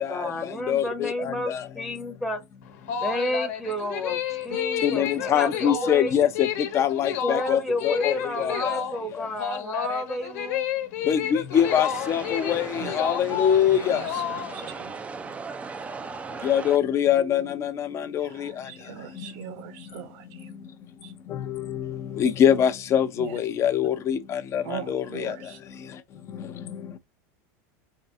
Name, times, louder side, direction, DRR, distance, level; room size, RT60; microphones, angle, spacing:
voice 1, 0.0-2.4 3.0-6.1 7.2-10.7, left 1 dB, ahead, 0.8 m, -31 dB
voice 2, 0.7-1.1 4.8-6.5 6.7-8.1 8.4-8.5 11.1-14.0 16.4-17.7 18.1-18.3 22.2-24.6 24.9-25.3, left 9 dB, 30° left, 0.6 m, -23 dB
sound 1, 2.6-14.8, left 9 dB, 70° left, 1.1 m, -31 dB
sound 2, 11.5-16.8, right 4 dB, 15° right, 0.4 m, -37 dB
voice 3, 13.9-15.6 18.2-20.5 21.0-21.1 23.2-23.4 24.6-25.6, right 8 dB, 60° right, 0.9 m, -41 dB
3.7 x 3.3 x 2.6 m
supercardioid pair, 140°, 9 cm